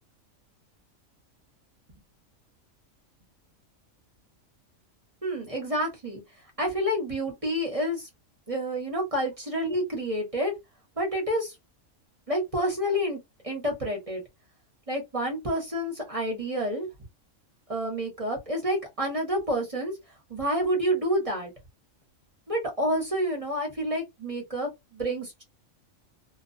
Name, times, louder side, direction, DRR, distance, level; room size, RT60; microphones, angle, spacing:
voice 1, 5.2-6.2 6.6-8.1 8.5-10.5 11.0-11.6 12.3-13.2 13.4-14.2 14.9-16.9 17.7-20.0 20.3-21.5 22.5-25.4, equal, 30° right, 0.9 m, -29 dB
2.3 x 2.2 x 2.6 m
omnidirectional pair, 1.4 m